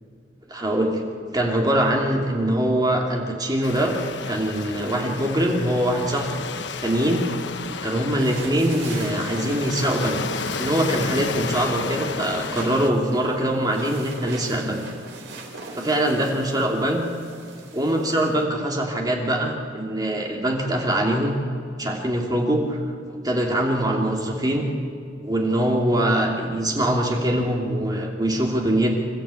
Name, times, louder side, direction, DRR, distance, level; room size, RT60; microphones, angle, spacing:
voice 1, 0.5-1.0 1.3-3.9 4.3-6.3 6.8-7.2 7.8-10.2 10.6-14.8 15.8-17.0 17.7-21.3 21.8-22.8 23.2-24.7 25.2-29.0, right 1 dB, 20° right, 0 dB, 2.7 m, -23 dB
Waves surf, 3.6-12.9, left 4 dB, 65° left, 1.0 m, -32 dB
sound 1, 8.2-18.4, right 3 dB, 70° right, 4.2 m, -41 dB
27.0 x 13.5 x 8.5 m, 2.3 s
head